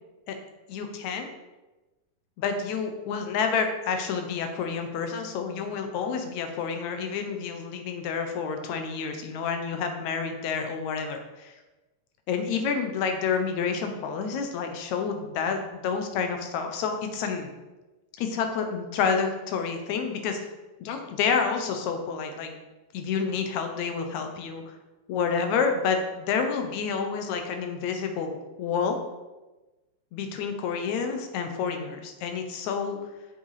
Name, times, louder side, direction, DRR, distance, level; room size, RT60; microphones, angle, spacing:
voice 1, 0.7-1.3 2.4-11.5 12.3-17.5 18.2-20.4 20.8-22.6 22.9-24.6 25.1-29.0 30.1-33.0, left 6 dB, 70° left, 5 dB, 2.2 m, -29 dB
7.9 x 6.9 x 4.9 m, 1.1 s
omnidirectional pair, 3.7 m